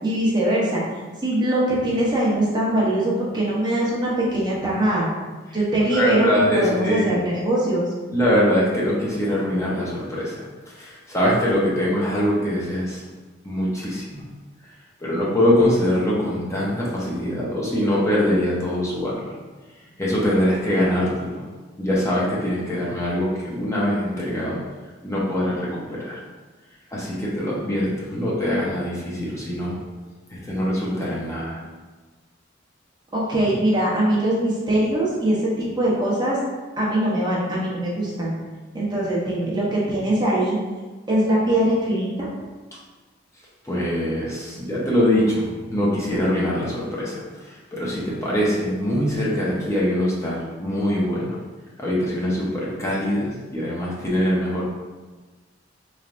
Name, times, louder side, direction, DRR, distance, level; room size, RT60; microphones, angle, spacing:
voice 1, 0.0-0.8 1.2-5.1 5.5-7.9 33.1-36.4 36.8-38.3 38.7-40.6 41.1-42.3, right 1 dB, 25° right, -6 dB, 0.9 m, -22 dB
voice 2, 5.9-7.3 8.1-10.4 10.8-13.0 13.4-14.2 15.0-19.3 20.0-21.4 21.8-24.6 25.0-26.2 26.9-29.8 30.3-31.6 43.6-51.4 51.8-54.6, equal, 15° left, -6 dB, 0.7 m, -23 dB
4.0 x 3.2 x 2.5 m, 1.3 s
head